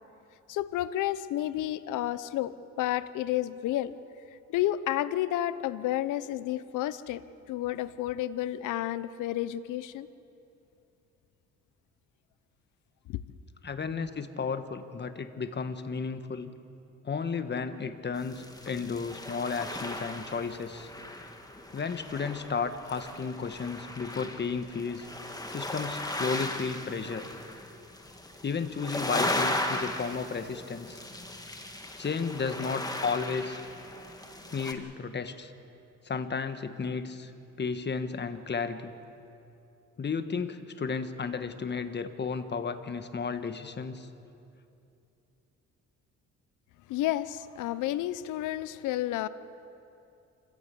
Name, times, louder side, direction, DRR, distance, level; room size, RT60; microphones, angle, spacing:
voice 1, 0.5-4.0 4.5-7.2 7.5-10.1 13.1-13.2 46.9-49.3, left 13 dB, 90° left, 15 dB, 0.7 m, -31 dB
voice 2, 13.6-16.5 17.0-20.9 21.7-25.1 25.5-27.3 28.4-31.0 32.0-33.6 34.5-35.5 36.0-37.3 37.6-38.9 40.0-44.1, left 5 dB, 35° left, 10 dB, 1.4 m, -33 dB
sound 1, 18.2-34.7, left 1 dB, 10° left, 2.0 m, -37 dB
26.5 x 15.0 x 8.4 m, 2.7 s
cardioid pair, 90°, 30 cm